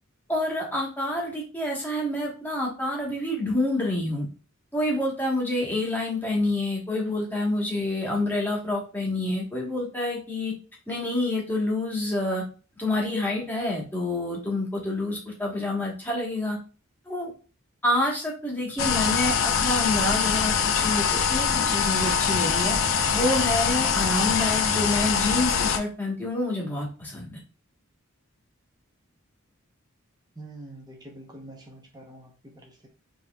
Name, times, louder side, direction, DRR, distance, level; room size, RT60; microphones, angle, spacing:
voice 1, 0.3-4.3 4.7-10.5 10.9-12.4 12.8-16.6 17.1-17.3 17.8-22.8 23.1-27.4, left 1 dB, 10° left, -3 dB, 1.2 m, -27 dB
sound 1, 18.8-25.8, left 6 dB, 65° left, 0.4 m, -23 dB
voice 2, 30.4-32.9, right 2 dB, 20° right, 1 dB, 0.8 m, -45 dB
4.9 x 2.9 x 2.2 m, 0.36 s
head